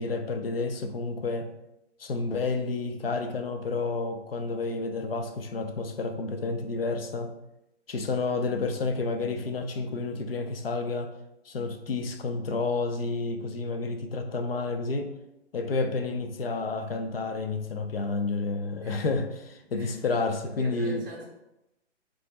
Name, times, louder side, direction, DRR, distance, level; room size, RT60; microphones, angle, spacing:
voice 1, 0.0-1.5 2.0-7.4 7.9-11.1 11.4-15.1 15.5-21.1, left 3 dB, 55° left, 6 dB, 0.5 m, -30 dB
voice 2, 18.8-19.3 19.7-20.0 20.4-21.3, right 1 dB, 20° right, -3 dB, 0.6 m, -43 dB
3.1 x 2.4 x 3.9 m, 0.88 s
figure-of-eight pair, 135°, 36 cm